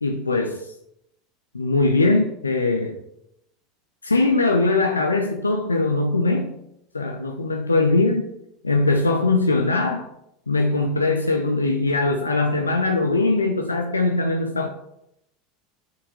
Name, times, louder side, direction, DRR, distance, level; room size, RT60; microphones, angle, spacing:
voice 1, 0.0-0.6 1.5-3.0 4.0-6.5 6.9-8.3 8.6-10.1 10.5-14.7, left 3 dB, 85° left, 4 dB, 0.6 m, -21 dB
6.3 x 4.7 x 4.9 m, 0.78 s
figure-of-eight pair, 80°, 0 cm